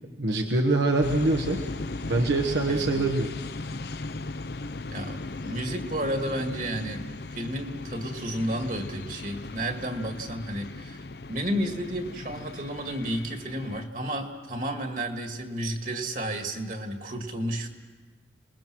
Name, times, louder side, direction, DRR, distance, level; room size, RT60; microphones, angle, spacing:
voice 1, 0.2-1.6 2.0-3.3, right 2 dB, 70° right, 2 dB, 1.4 m, -24 dB
sound 1, 1.0-13.9, left 2 dB, 60° left, 0.7 m, -37 dB
voice 2, 2.7-3.1 4.9-7.0 7.3-11.0 11.3-17.7, right 1 dB, 45° right, 4 dB, 2.2 m, -32 dB
29.5 x 21.0 x 6.2 m, 1.4 s
head